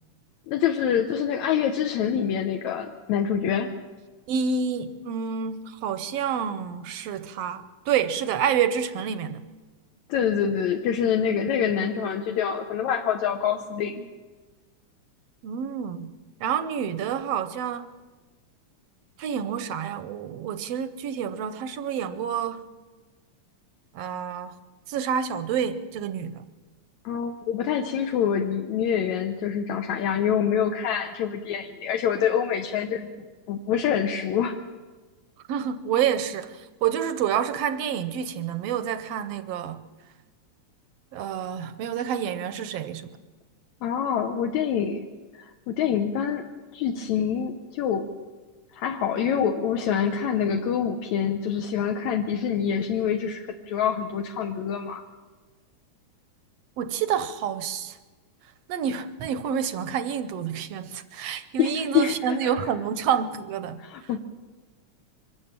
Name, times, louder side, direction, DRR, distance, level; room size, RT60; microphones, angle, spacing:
voice 1, 0.5-3.7 10.1-14.1 27.1-34.6 43.8-45.1 45.4-46.5 46.7-48.1 48.7-55.0 61.6-62.7 63.8-64.2, left 8 dB, 75° left, 2.2 m, -26 dB
voice 2, 4.3-9.4 15.4-16.1 16.4-17.9 19.2-22.6 23.9-24.5 24.9-26.4 35.5-39.8 41.1-43.1 56.8-58.0 58.7-63.8, right 8 dB, 70° right, 1.6 m, -28 dB
24.0 x 13.0 x 8.8 m
omnidirectional pair, 3.5 m